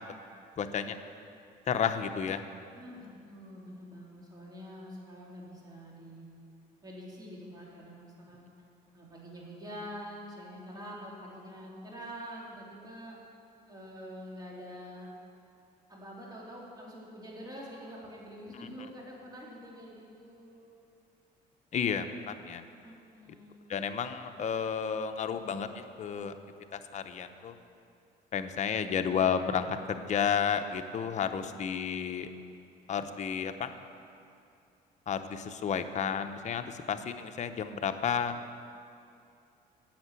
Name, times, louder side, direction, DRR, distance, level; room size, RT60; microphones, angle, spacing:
voice 1, 0.6-1.0 1.7-2.4 18.5-18.7 21.7-22.6 23.7-26.3 26.7-27.6 28.3-32.3 32.9-33.7 35.1-38.3, left 7 dB, 45° left, 8 dB, 0.8 m, -32 dB
voice 2, 2.7-6.3 6.8-8.4 8.9-13.2 13.7-15.1 15.9-20.7 22.8-23.8, equal, 25° right, -4 dB, 3.3 m, -46 dB
10.5 x 8.4 x 8.2 m, 2.5 s
cardioid pair, 110°, 17 cm